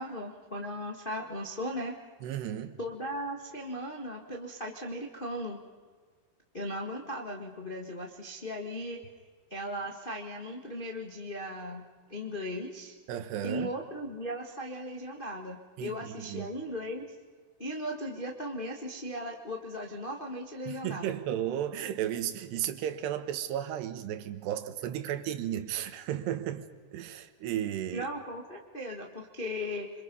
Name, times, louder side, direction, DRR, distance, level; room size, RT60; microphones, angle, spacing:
voice 1, 0.0-1.9 2.8-5.6 6.5-9.0 9.5-12.9 13.4-17.0 17.6-21.2 27.9-30.0, equal, 85° left, 0 dB, 0.4 m, -37 dB
voice 2, 2.2-2.8 13.1-13.7 15.8-16.5 20.7-28.1, right 11 dB, 90° right, 10 dB, 3.4 m, -34 dB
27.0 x 26.5 x 5.5 m, 1.5 s
omnidirectional pair, 4.7 m